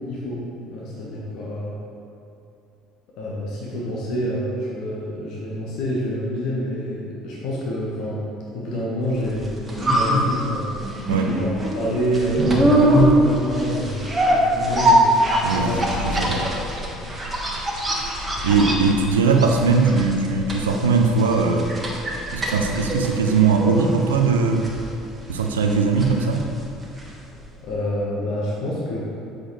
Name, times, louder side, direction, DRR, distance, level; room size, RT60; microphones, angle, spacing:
voice 1, 0.1-1.7 3.2-8.2 8.5-10.6 11.0-11.5 11.7-15.1 15.5-15.8 16.1-16.5 17.0-17.1 27.6-29.0, equal, 55° left, -5 dB, 1.3 m, -27 dB
sound 1, 9.3-27.3 27.6-27.7, right 1 dB, 20° right, 1.4 m, -23 dB
voice 2, 11.1-11.4 15.4-16.4 18.4-21.7 22.3-24.7 25.3-26.4, right 4 dB, 75° right, 3 dB, 0.6 m, -20 dB
8.0 x 6.3 x 3.2 m, 2.7 s
figure-of-eight pair, 60°, 0 cm